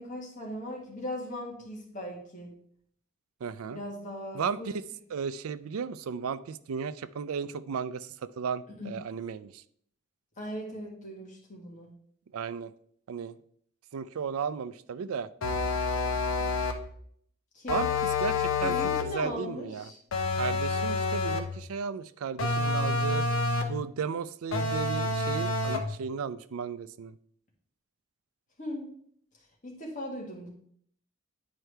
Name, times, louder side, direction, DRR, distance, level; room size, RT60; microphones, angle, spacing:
voice 1, 0.0-2.5 3.7-4.7 8.8-8.9 10.4-11.9 17.5-17.8 18.6-20.0 28.6-28.9 29.6-30.5, left 1 dB, 35° left, -2 dB, 1.7 m, -38 dB
voice 2, 3.4-3.8 4.3-4.8 5.1-9.6 12.3-12.7 13.1-13.4 13.9-15.3 17.7-17.9 18.2-18.8 19.1-19.9 20.4-23.3 23.7-27.1, right 6 dB, 85° right, 16 dB, 0.4 m, -34 dB
sound 1, 15.4-16.9 17.7-19.2 20.1-21.6 22.4-23.8 24.5-26.0, left 3 dB, 75° left, 0.9 m, -28 dB
9.7 x 4.5 x 3.3 m, 0.65 s
head